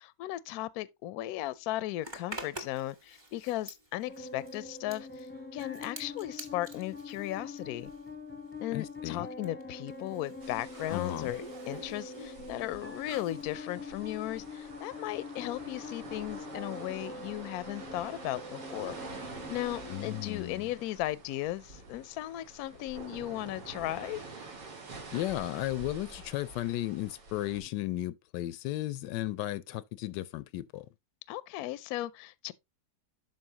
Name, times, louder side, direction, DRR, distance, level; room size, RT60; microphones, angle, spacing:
voice 1, 0.0-7.9 8.6-19.0 19.5-24.2 31.3-32.5, left 15 dB, 70° left, 1.0 m, -36 dB
Zipper (clothing), 2.0-8.2 8.5-13.4, right 1 dB, 20° right, 1.1 m, -48 dB
sound 1, 4.1-21.1, left 3 dB, 10° left, 0.8 m, -44 dB
voice 2, 8.7-9.2 10.9-11.3 19.9-20.7 25.1-30.9, left 15 dB, 90° left, 1.2 m, -35 dB
sound 2, 10.4-27.6, right 3 dB, 85° right, 2.6 m, -47 dB
12.0 x 4.7 x 2.9 m
omnidirectional pair, 1.8 m